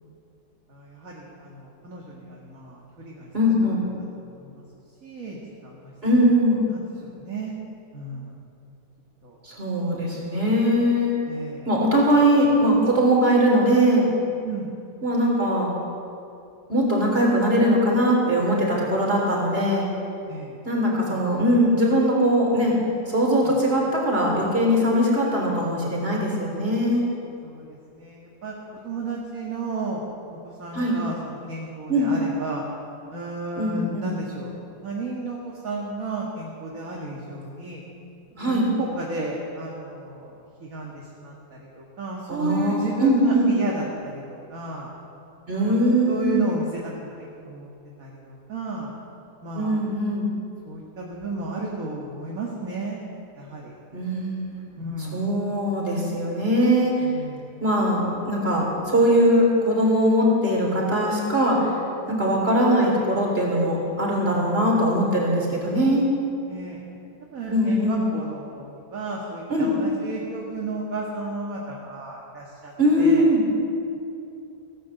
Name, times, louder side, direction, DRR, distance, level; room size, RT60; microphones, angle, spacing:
voice 1, 0.7-3.3 4.2-4.6 5.0-5.9 6.7-7.5 7.9-8.3 9.2-9.4 11.3-11.7 14.4-14.7 20.3-20.6 23.4-23.5 27.4-27.6 27.9-28.5 28.8-30.0 30.3-32.6 33.1-34.6 34.8-37.8 38.4-44.9 45.5-46.6 47.0-47.7 48.0-48.9 49.4-49.8 50.6-53.0 53.4-53.8 54.8-55.2 57.0-57.5 62.1-62.3 66.5-66.8 67.3-72.7 73.0-73.3, right 3 dB, 45° right, -3 dB, 2.1 m, -33 dB
voice 2, 3.3-3.8 6.0-6.7 9.4-11.1 11.6-14.0 15.0-15.7 16.7-19.9 20.6-22.7 23.1-27.1 30.7-31.0 31.9-32.1 33.6-34.1 38.4-38.7 42.3-43.5 45.5-46.5 49.5-50.3 53.9-54.5 55.1-57.0 57.6-61.7 62.1-66.1 67.5-68.0 69.5-69.7 72.8-73.4, equal, 30° right, -2 dB, 3.9 m, -21 dB
16.5 x 11.5 x 7.7 m, 2.7 s
omnidirectional pair, 2.1 m